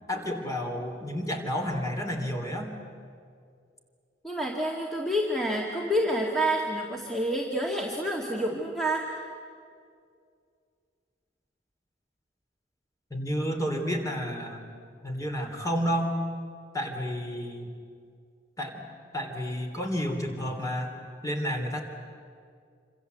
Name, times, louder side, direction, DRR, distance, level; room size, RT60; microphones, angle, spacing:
voice 1, 0.1-2.7 13.1-14.6 15.0-16.1 16.7-17.7 18.6-18.9 19.1-20.9 21.2-21.8, equal, 20° left, 3 dB, 3.4 m, -30 dB
voice 2, 4.2-9.1, right 1 dB, ahead, -2 dB, 2.2 m, -28 dB
27.0 x 26.5 x 8.2 m, 2.2 s
head